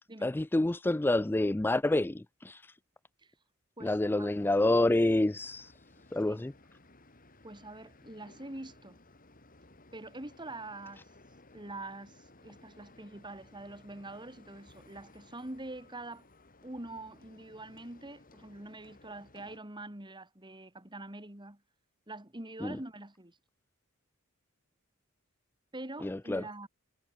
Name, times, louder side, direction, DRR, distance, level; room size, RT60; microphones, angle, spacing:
voice 1, 0.2-2.7 3.8-5.7 6.1-6.5 22.6-22.8 26.0-26.4, left 2 dB, 10° left, 0.3 m, -28 dB
voice 2, 3.8-4.3 6.2-6.4 7.4-9.0 9.9-11.0 11.5-16.3 16.6-21.6 22.1-23.4 25.7-26.7, right 2 dB, 20° right, 2.8 m, -45 dB
sound 1, 4.3-19.6, left 2 dB, 40° left, 3.9 m, -59 dB
head